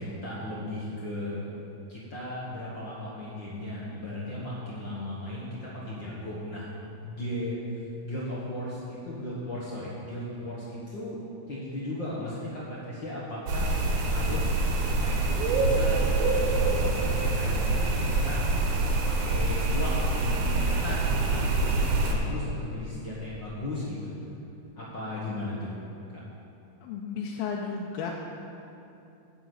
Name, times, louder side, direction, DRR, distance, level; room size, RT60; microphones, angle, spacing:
voice 1, 0.0-1.4 1.9-6.7 7.0-11.2 11.5-13.7 14.1-14.5 14.9-18.4 19.1-24.2 24.8-25.7 26.1-26.2, left 1 dB, 65° left, -6 dB, 1.1 m, -36 dB
sound 1, 13.5-22.1, right 2 dB, 70° right, 2.3 m, -25 dB
voice 2, 26.8-28.1, left 6 dB, 90° left, -1 dB, 2.5 m, -33 dB
10.0 x 6.1 x 7.8 m, 2.8 s
omnidirectional pair, 4.2 m